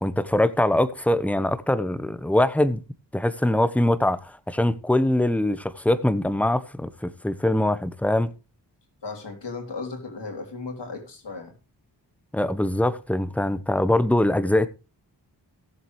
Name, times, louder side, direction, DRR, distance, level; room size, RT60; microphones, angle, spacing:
voice 1, 0.0-2.8 3.1-8.3 12.3-14.7, left 1 dB, 5° left, 1.0 m, -23 dB
voice 2, 9.0-11.5, left 3 dB, 70° left, 3.3 m, -35 dB
18.0 x 7.6 x 3.2 m
cardioid pair, 40°, 44 cm